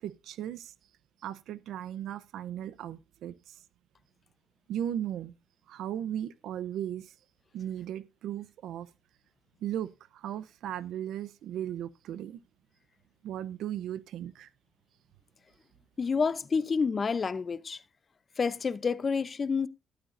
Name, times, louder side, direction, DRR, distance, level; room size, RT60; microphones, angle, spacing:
voice 1, 0.0-0.7 1.2-3.6 4.7-5.3 5.7-7.1 7.5-8.9 9.6-12.4 13.2-14.5, right 10 dB, 80° right, 0.7 m, -36 dB
voice 2, 16.0-17.8 18.4-19.7, left 5 dB, 40° left, 0.6 m, -29 dB
12.5 x 11.5 x 2.6 m
cardioid pair, 90°, 0 cm